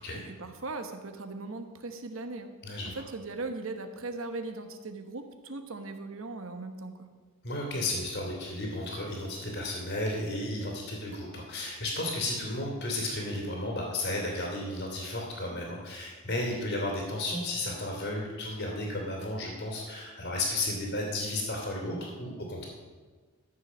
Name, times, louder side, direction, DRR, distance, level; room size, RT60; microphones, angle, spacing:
voice 1, 0.0-2.5 2.9-7.1, right 3 dB, 65° right, 7 dB, 1.1 m, -39 dB
voice 2, 2.6-3.0 7.4-22.6, left 1 dB, 55° left, -2 dB, 2.5 m, -33 dB
13.5 x 7.1 x 6.2 m, 1.4 s
head